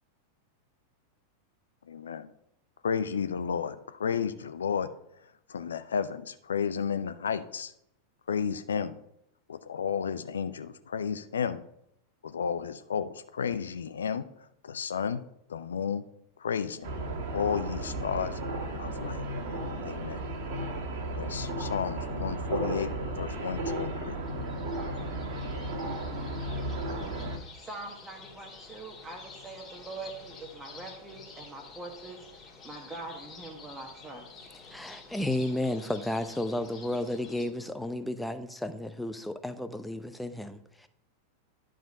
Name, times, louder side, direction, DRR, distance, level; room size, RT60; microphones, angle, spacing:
voice 1, 1.9-2.3 2.8-4.9 5.5-7.7 8.3-9.0 9.5-11.6 12.2-14.2 14.6-15.2 15.5-16.0 16.4-16.9 17.3-18.4 18.8-19.2 19.8-20.2 21.2-24.2, left 7 dB, 70° left, 0.5 m, -32 dB
sound 1, 16.8-27.4, right 1 dB, 45° right, 1.9 m, -34 dB
sound 2, 24.2-37.4, left 4 dB, 25° left, 2.2 m, -50 dB
voice 2, 27.2-34.2, right 2 dB, 15° right, 1.3 m, -43 dB
voice 3, 34.7-40.9, left 1 dB, 5° left, 0.7 m, -33 dB
10.5 x 5.1 x 5.3 m
figure-of-eight pair, 90°, 0 cm